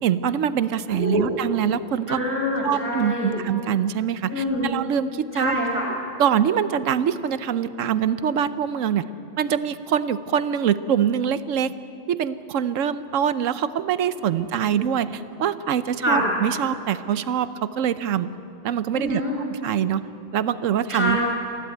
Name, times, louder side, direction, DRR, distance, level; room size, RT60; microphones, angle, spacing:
voice 1, 0.0-2.2 2.6-5.6 6.2-9.1 9.4-11.7 12.1-18.3 18.6-19.2 19.5-20.0 20.3-21.2, right 8 dB, 75° right, 14 dB, 1.1 m, -24 dB
voice 2, 0.9-1.3 2.1-3.4 4.3-4.7 5.3-5.9 14.6-14.8 16.0-16.2 18.9-19.4 20.9-21.2, left 1 dB, 10° left, -2 dB, 4.7 m, -25 dB
28.0 x 11.5 x 9.1 m, 2.8 s
omnidirectional pair, 1.3 m